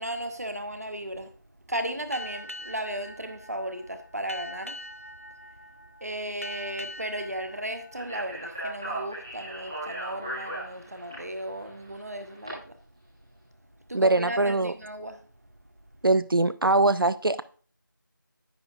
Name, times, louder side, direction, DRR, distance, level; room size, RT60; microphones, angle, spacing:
voice 1, 0.0-1.3 1.7-4.8 6.0-12.8 13.9-15.3, right 1 dB, 45° right, 1.0 m, -35 dB
Boat Water vehicle, 2.1-9.2, left 1 dB, 40° left, 0.4 m, -44 dB
Speech, 7.9-12.5, right 1 dB, 15° right, 1.4 m, -37 dB
voice 2, 13.9-14.7 16.0-17.4, right 2 dB, 85° right, 0.5 m, -22 dB
9.9 x 8.3 x 2.5 m
figure-of-eight pair, 175°, 11 cm